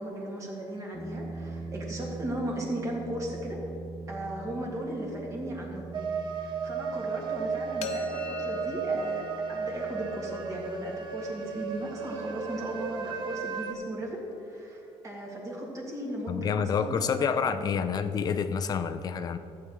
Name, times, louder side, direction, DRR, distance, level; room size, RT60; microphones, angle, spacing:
voice 1, 0.0-3.6 4.1-6.1 6.3-17.9, right 1 dB, 30° right, -2 dB, 2.0 m, -37 dB
sound 1, 0.9-14.0, right 3 dB, ahead, 1.0 m, -44 dB
sound 2, 5.9-13.7, right 5 dB, 50° right, 0.7 m, -34 dB
sound 3, 7.8-13.6, left 5 dB, 80° left, 0.7 m, -43 dB
voice 2, 16.3-19.4, left 6 dB, 40° left, 10 dB, 0.5 m, -28 dB
14.0 x 8.7 x 3.1 m, 2.6 s
cardioid pair, 150°, 11 cm